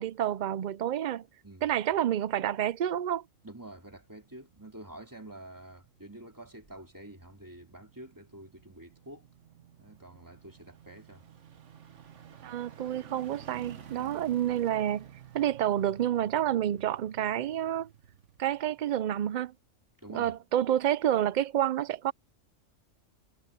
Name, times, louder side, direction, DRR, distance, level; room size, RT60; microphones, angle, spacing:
voice 1, 0.0-1.3 1.6-3.2 12.4-15.1 15.3-17.9 18.4-19.5 20.1-22.1, right 11 dB, 85° right, 0.4 m, -29 dB
sound 1, 3.0-19.5 19.9-20.0, right 8 dB, 70° right, 1.5 m, -53 dB
voice 2, 3.4-9.3 9.8-11.2 20.0-20.4, right 1 dB, 15° right, 3.1 m, -48 dB
omnidirectional pair, 1.3 m